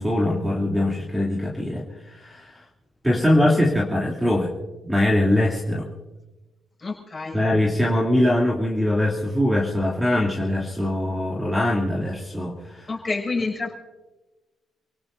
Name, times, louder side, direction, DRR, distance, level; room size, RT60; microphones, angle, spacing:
voice 1, 0.0-2.6 3.0-4.5 4.8-5.9 7.3-12.9, left 1 dB, 10° right, -3 dB, 3.0 m, -22 dB
voice 2, 6.8-7.4 12.9-13.7, left 3 dB, 25° left, 1 dB, 6.4 m, -28 dB
29.0 x 17.5 x 2.7 m, 1.1 s
cardioid pair, 90°, 0 cm